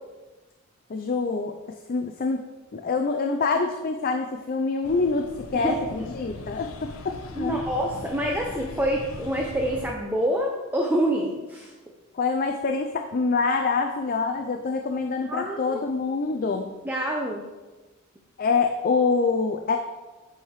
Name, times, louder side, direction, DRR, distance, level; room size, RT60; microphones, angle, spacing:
voice 1, 0.9-1.5 1.9-2.4 2.7-5.2 5.5-6.7 7.0-7.6 12.1-16.7 18.4-19.8, left 4 dB, 45° left, 5 dB, 0.4 m, -25 dB
sound 1, 4.8-9.9, left 2 dB, 70° left, 0.7 m, -40 dB
voice 2, 5.5-6.0 7.3-11.7 15.3-15.8 16.8-17.4, right 1 dB, 10° right, -1 dB, 0.7 m, -27 dB
8.3 x 4.8 x 4.7 m, 1.2 s
head